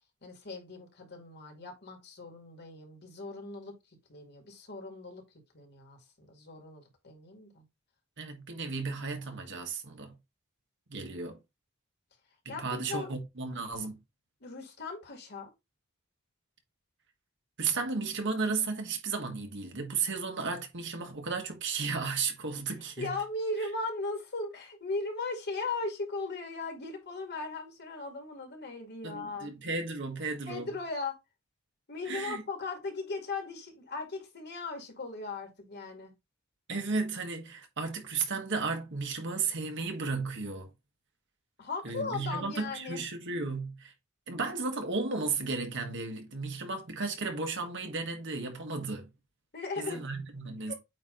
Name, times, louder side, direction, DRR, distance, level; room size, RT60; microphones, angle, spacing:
voice 1, 0.2-3.7 4.1-5.2 5.5-7.6 12.5-13.1 14.4-15.5 23.0-29.5 30.5-31.1 31.9-36.1 41.6-43.0 49.5-50.0 50.7-50.8, left 3 dB, 55° left, 2.2 m, -38 dB
voice 2, 8.2-10.1 10.9-11.4 12.4-14.0 17.6-23.1 29.0-30.7 32.0-32.4 36.7-40.7 41.8-43.9 44.3-49.1 49.8-50.7, right 4 dB, 60° right, 1.5 m, -34 dB
8.5 x 3.0 x 3.9 m
head